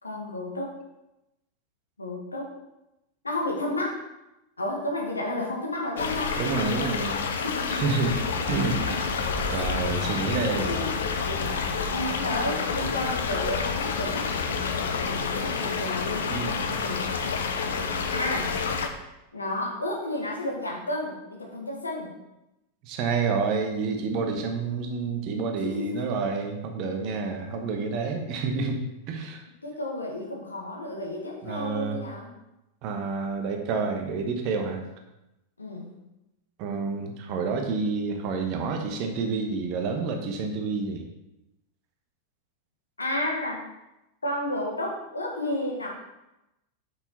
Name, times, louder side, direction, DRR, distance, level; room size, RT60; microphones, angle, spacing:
voice 1, 0.0-0.7 2.0-2.5 3.2-4.0 4.6-6.4 7.4-7.8 8.9-9.0 9.4-9.7 10.7-10.9 11.3-11.4 11.9-14.3 14.8-17.1 18.1-18.5 19.3-22.1 25.6-26.0 29.6-32.3 35.6-35.9 43.0-43.6 44.2-45.9, left 1 dB, 80° left, -1 dB, 1.6 m, -32 dB
sound 1, 6.0-18.9, left 5 dB, 65° left, 0.7 m, -29 dB
voice 2, 6.4-7.2 7.7-8.2 8.5-9.0 9.5-10.8 16.2-16.8 22.8-29.4 31.4-32.0 32.8-34.8 36.6-41.1, right 4 dB, 40° right, 4 dB, 1.1 m, -29 dB
sound 2, 8.0-14.9, left 4 dB, 45° left, 1.0 m, -36 dB
6.2 x 6.1 x 4.2 m, 0.93 s
figure-of-eight pair, 90°, 0 cm